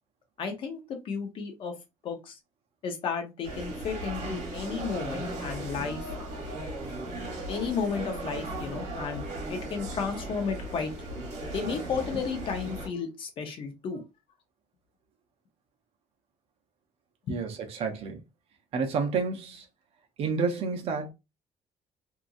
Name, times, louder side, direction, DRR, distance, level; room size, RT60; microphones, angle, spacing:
voice 1, 0.4-1.8 2.0-2.4 2.8-6.1 7.5-9.2 9.5-11.1 11.5-14.0 17.3-17.4, left 5 dB, 50° left, 0.7 m, -33 dB
sound 1, 3.4-12.9, right 1 dB, 90° right, 1.1 m, -37 dB
voice 2, 17.3-18.2 18.7-19.7 20.2-21.1, right 5 dB, 55° right, 0.7 m, -30 dB
2.8 x 2.5 x 2.3 m
cardioid pair, 160°, 12 cm